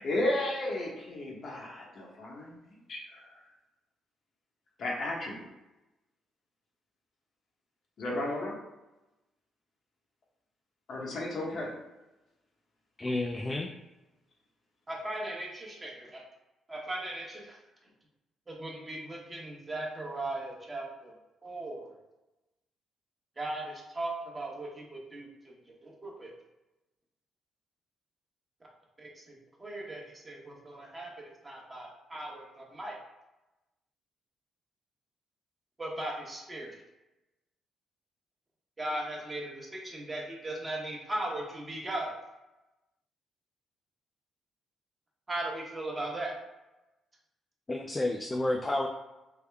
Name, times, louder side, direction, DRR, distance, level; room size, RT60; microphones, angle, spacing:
voice 1, 0.0-2.6 2.9-3.2 4.8-5.5 8.0-8.6 10.9-11.7, left 1 dB, 60° left, -2 dB, 0.9 m, -33 dB
voice 2, 13.0-13.7 47.7-48.9, left 2 dB, 20° left, 2 dB, 0.3 m, -30 dB
voice 3, 14.9-16.2 16.7-17.6 18.5-21.1 21.4-22.0 23.4-26.3 29.0-33.0 35.8-36.7 38.8-42.1 45.3-46.3, right 1 dB, 25° right, -2 dB, 1.0 m, -38 dB
3.5 x 2.1 x 3.3 m, 1.0 s
cardioid pair, 90°, 0 cm